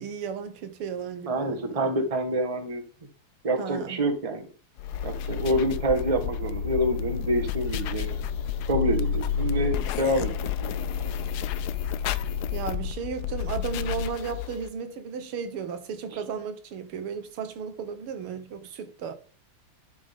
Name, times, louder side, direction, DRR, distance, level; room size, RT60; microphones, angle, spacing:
voice 1, 0.0-1.9 3.6-4.1 12.5-19.1, right 6 dB, 85° right, 2.0 m, -34 dB
voice 2, 1.2-2.8 3.4-4.5 5.0-8.1 8.7-10.3 10.6-11.1 16.1-16.2, right 1 dB, 20° right, 1.2 m, -27 dB
sound 1, 4.8-14.7, left 8 dB, 80° left, 0.9 m, -30 dB
10.5 x 5.2 x 3.6 m
omnidirectional pair, 2.4 m